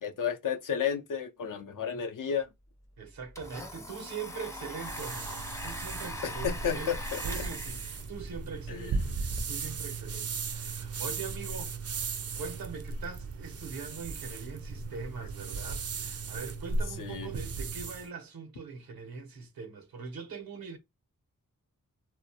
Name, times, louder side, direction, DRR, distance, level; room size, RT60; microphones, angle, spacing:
voice 1, 0.0-2.5 6.2-7.2 8.7-8.9 17.0-17.3, left 7 dB, 65° left, 0.5 m, -32 dB
Domestic sounds home sounds, 2.4-2.5 2.8-9.4, left 1 dB, 10° left, 0.5 m, -42 dB
voice 2, 3.0-20.8, right 5 dB, 85° right, 0.6 m, -42 dB
sound 1, 4.8-18.1, right 4 dB, 45° right, 0.4 m, -36 dB
2.3 x 2.1 x 2.7 m
cardioid pair, 50°, 35 cm